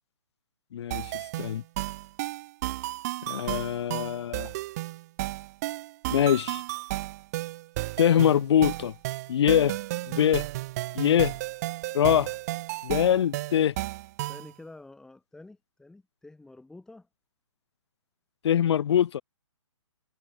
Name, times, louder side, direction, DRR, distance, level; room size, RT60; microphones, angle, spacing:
voice 1, 0.7-1.1 1.4-1.6 3.3-4.5 6.1-6.6 8.0-8.9 9.3-9.8 10.1-10.4 10.9-11.3 11.9-12.3 12.8-13.7 18.4-19.2, left 9 dB, 60° left, 0.4 m, -23 dB
sound 1, 0.9-14.5, right 18 dB, 30° right, 0.8 m, -33 dB
voice 2, 14.3-17.1, left 2 dB, 5° left, 2.4 m, -49 dB
hypercardioid pair, 145°, 16 cm